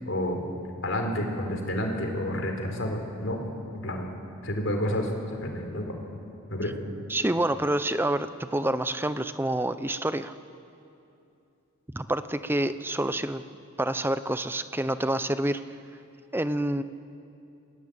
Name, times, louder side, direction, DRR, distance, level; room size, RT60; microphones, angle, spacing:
voice 1, 0.1-0.4 0.8-3.4 3.8-4.1 4.4-5.1 5.4-5.9 6.5-6.7, left 1 dB, 60° left, 3 dB, 4.0 m, -29 dB
voice 2, 7.1-10.3 11.9-13.4 13.8-15.6 16.3-16.8, right 1 dB, 10° right, 12 dB, 0.6 m, -27 dB
29.0 x 20.0 x 8.7 m, 2.7 s
head